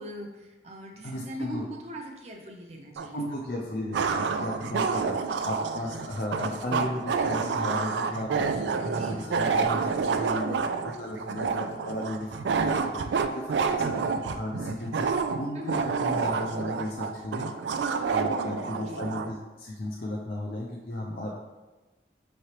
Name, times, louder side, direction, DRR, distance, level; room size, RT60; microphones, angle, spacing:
voice 1, 0.0-3.5 4.5-4.6 8.8-10.3 15.5-15.8 18.4-19.1, right 1 dB, 35° right, 1 dB, 0.6 m, -41 dB
voice 2, 1.0-1.6 3.1-10.6 10.8-17.5 18.1-21.3, left 1 dB, 55° left, -3 dB, 0.5 m, -35 dB
sound 1, 3.0-3.1 3.9-19.3, right 5 dB, 80° right, 0.3 m, -28 dB
5.7 x 3.2 x 2.9 m, 1.1 s
head